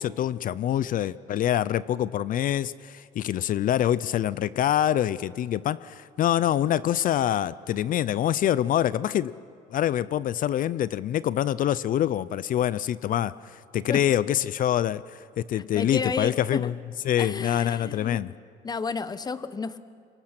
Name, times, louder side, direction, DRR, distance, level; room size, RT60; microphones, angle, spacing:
voice 1, 0.0-9.3 9.7-16.7 17.0-18.3, left 11 dB, 55° left, 18 dB, 0.5 m, -25 dB
voice 2, 15.5-16.7 17.2-18.2 18.6-19.8, left 5 dB, 25° left, 13 dB, 1.0 m, -32 dB
26.0 x 23.5 x 6.0 m, 2.2 s
cardioid pair, 110°, 17 cm